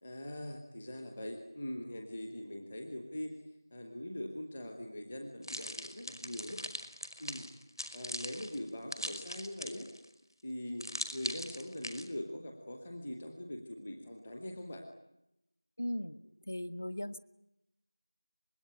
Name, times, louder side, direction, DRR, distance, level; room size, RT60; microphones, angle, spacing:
voice 1, 0.0-3.4 3.7-6.6 7.2-7.5 7.9-9.9 10.4-10.8 11.1-14.8, left 1 dB, 5° left, 4 dB, 0.9 m, -42 dB
sound 1, 5.4-10.0 10.8-12.1, equal, 80° left, 5.3 m, -41 dB
voice 2, 15.8-17.2, left 1 dB, 35° left, 16 dB, 1.1 m, -38 dB
25.5 x 21.0 x 9.9 m, 0.87 s
figure-of-eight pair, 180°, 2 cm